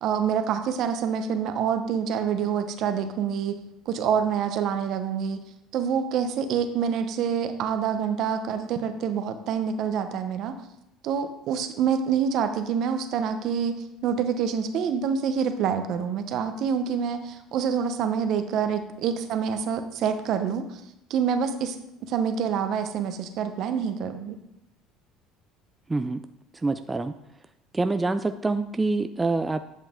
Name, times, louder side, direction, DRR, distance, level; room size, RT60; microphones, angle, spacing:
voice 1, 0.0-3.6 3.9-5.4 5.7-10.6 11.0-20.8 21.1-21.7 22.1-24.4, right 7 dB, 60° right, 9 dB, 0.8 m, -26 dB
voice 2, 25.9-26.3 26.6-27.1 27.7-29.7, right 3 dB, 15° right, 9 dB, 0.3 m, -26 dB
9.4 x 5.7 x 3.6 m, 0.83 s
supercardioid pair, 100°, 0 cm